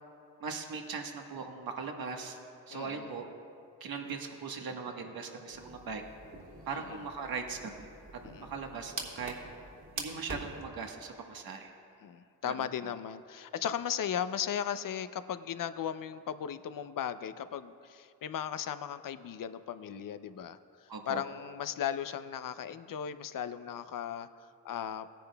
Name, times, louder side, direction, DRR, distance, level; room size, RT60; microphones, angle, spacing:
voice 1, 0.4-2.4 2.7-3.2 3.8-6.0 6.7-7.9 8.4-9.3 9.9-11.7 12.4-12.5 20.9-21.2, right 5 dB, 65° right, 3 dB, 1.4 m, -39 dB
voice 2, 2.7-3.1 6.7-7.0 8.2-8.5 12.0-25.1, left 9 dB, 55° left, 12 dB, 0.6 m, -37 dB
sound 1, 5.5-10.6, right 2 dB, 50° right, 2.5 m, -45 dB
17.5 x 10.0 x 2.3 m, 2.5 s
supercardioid pair, 45°, 39 cm